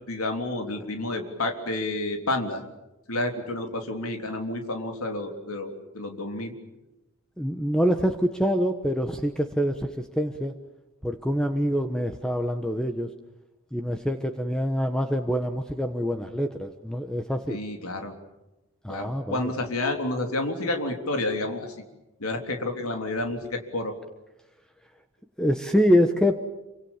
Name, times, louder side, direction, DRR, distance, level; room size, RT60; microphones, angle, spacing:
voice 1, 0.1-2.6 3.1-6.5 17.5-18.1 18.9-21.7 22.2-23.9, left 2 dB, 85° left, 4 dB, 3.6 m, -30 dB
voice 2, 7.4-9.9 10.2-10.5 11.0-13.1 13.7-17.6 18.8-19.5 25.4-26.3, equal, 5° left, 6 dB, 1.2 m, -25 dB
27.5 x 25.5 x 7.4 m, 0.98 s
head